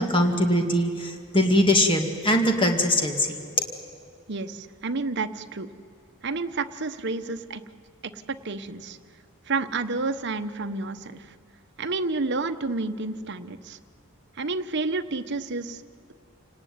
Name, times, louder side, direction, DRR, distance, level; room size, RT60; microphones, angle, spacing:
voice 1, 0.0-3.4, left 1 dB, 25° left, 4 dB, 2.2 m, -22 dB
voice 2, 4.3-5.7 6.2-7.6 8.1-9.0 9.5-11.3 11.8-13.8 14.4-15.8, right 3 dB, 55° right, 9 dB, 1.0 m, -30 dB
28.5 x 18.5 x 9.4 m, 2.3 s
head